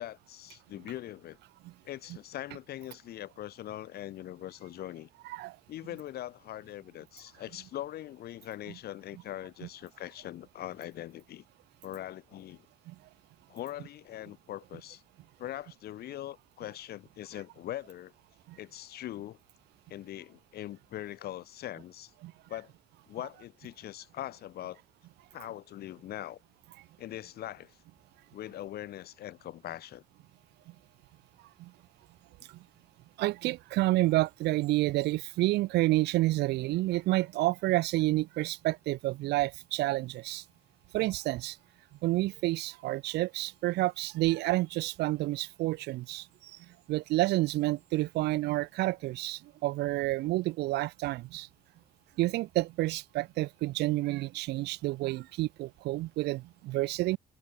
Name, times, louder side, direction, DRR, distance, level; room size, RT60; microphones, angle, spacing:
voice 1, 0.0-1.4 1.8-5.1 5.7-11.4 11.8-12.7 13.5-15.0 15.4-18.1 18.6-19.4 19.9-22.1 22.5-22.7 23.1-24.8 25.3-26.4 27.0-27.8 28.3-30.0, left 13 dB, 70° left, 7.8 m, -41 dB
voice 2, 33.2-40.4 40.9-41.6 42.0-46.6 46.9-51.5 52.2-57.2, right 18 dB, 80° right, 1.3 m, -29 dB
cardioid pair, 110°, 17 cm